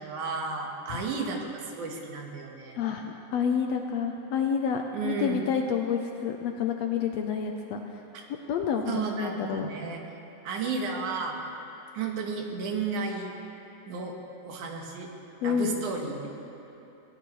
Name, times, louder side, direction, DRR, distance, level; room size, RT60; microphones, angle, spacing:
voice 1, 0.0-2.9 4.9-5.4 8.1-8.2 8.9-10.0 10.4-11.4 11.9-13.3 13.9-14.2 14.4-15.1 15.4-16.3, right 4 dB, 75° right, 1 dB, 2.9 m, -33 dB
voice 2, 2.8-7.8 8.5-9.7 15.4-15.7, left 7 dB, 75° left, 3 dB, 1.6 m, -29 dB
23.0 x 17.5 x 3.2 m, 2.9 s
omnidirectional pair, 3.6 m